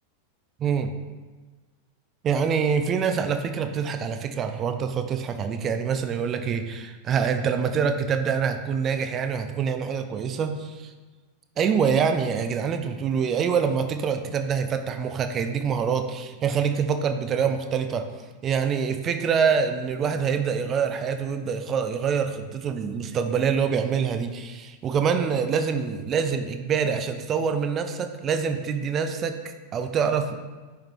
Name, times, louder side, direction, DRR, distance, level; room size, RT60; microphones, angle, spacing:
voice 1, 0.6-0.9 2.2-10.9 11.6-18.1 18.4-29.4 29.7-30.3, right 6 dB, 30° right, 8 dB, 0.6 m, -25 dB
10.5 x 3.6 x 4.6 m, 1.3 s
figure-of-eight pair, 90°, 0 cm